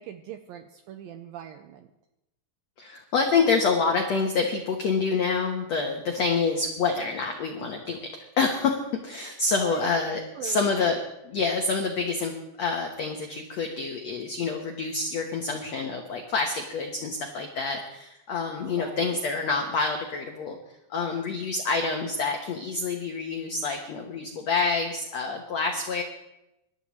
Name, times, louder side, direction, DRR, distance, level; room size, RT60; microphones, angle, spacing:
voice 1, 0.0-1.9 9.6-10.1 10.3-10.7 18.7-19.2, right 9 dB, 85° right, 7 dB, 2.1 m, -41 dB
voice 2, 2.8-8.0 8.4-12.3 12.6-20.6 20.9-26.0, left 4 dB, 80° left, 3 dB, 1.5 m, -27 dB
25.5 x 13.0 x 3.1 m, 0.90 s
omnidirectional pair, 4.8 m